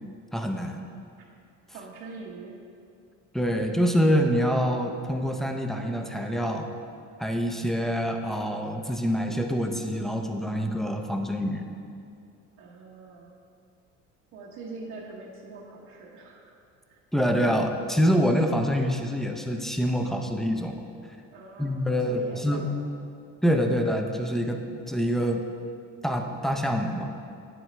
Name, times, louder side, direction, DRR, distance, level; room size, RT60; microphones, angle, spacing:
voice 1, 0.3-0.8 3.3-6.7 7.2-11.6 17.1-20.8 21.6-22.7 23.4-25.4 26.0-27.1, equal, ahead, 4 dB, 0.5 m, -26 dB
voice 2, 1.7-2.6 12.6-13.3 14.3-16.5 16.9-17.0 21.3-22.9, right 3 dB, 70° right, -4 dB, 1.1 m, -43 dB
8.7 x 7.7 x 3.3 m, 2.5 s
cardioid pair, 125°, 29 cm